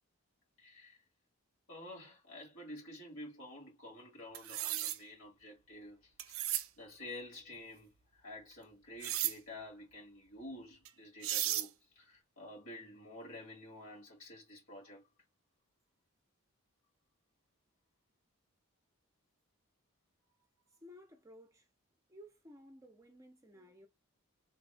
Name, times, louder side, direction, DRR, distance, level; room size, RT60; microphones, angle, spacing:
voice 1, 0.6-1.0 1.7-15.0 23.6-23.7, left 1 dB, 70° left, 2.1 m, -50 dB
sound 1, 4.3-5.0 6.2-6.7 9.0-9.3 10.8-10.9 11.2-11.7, right 13 dB, 70° right, 0.5 m, -34 dB
voice 2, 20.8-21.6 22.1-23.9, equal, 15° right, 0.6 m, -56 dB
3.3 x 2.3 x 3.3 m
head